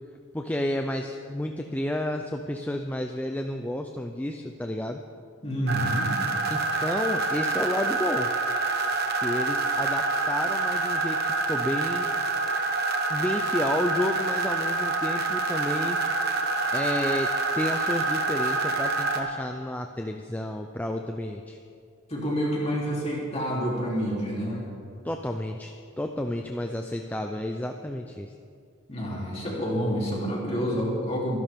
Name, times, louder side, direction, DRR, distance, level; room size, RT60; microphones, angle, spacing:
voice 1, 0.3-5.0 6.5-8.3 9.2-12.1 13.1-16.0 16.7-17.3 17.5-21.6 25.0-25.7 26.0-28.3, left 1 dB, 5° left, 4 dB, 0.4 m, -31 dB
voice 2, 5.4-6.2 22.1-24.6 28.9-31.4, equal, 30° left, -4 dB, 3.2 m, -28 dB
sound 1, 5.7-19.2, right 3 dB, 45° right, 1.2 m, -27 dB
24.5 x 11.0 x 3.6 m, 2.3 s
head